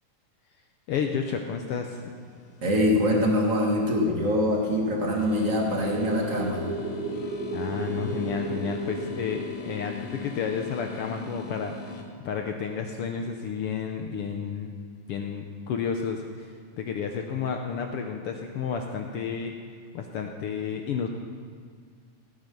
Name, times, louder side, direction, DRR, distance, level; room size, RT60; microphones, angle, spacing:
voice 1, 0.9-2.1 7.5-11.8 12.2-14.7 15.1-16.5 16.8-19.5 19.9-21.1, left 6 dB, 80° left, 4 dB, 1.3 m, -31 dB
sound 1, 1.0-12.0, left 8 dB, 55° left, 2.1 m, -42 dB
voice 2, 2.6-6.6, left 1 dB, 35° right, -1 dB, 1.6 m, -24 dB
sound 2, 4.3-12.4, right 3 dB, 65° right, 1.4 m, -37 dB
16.5 x 9.4 x 5.4 m, 2.1 s
omnidirectional pair, 3.5 m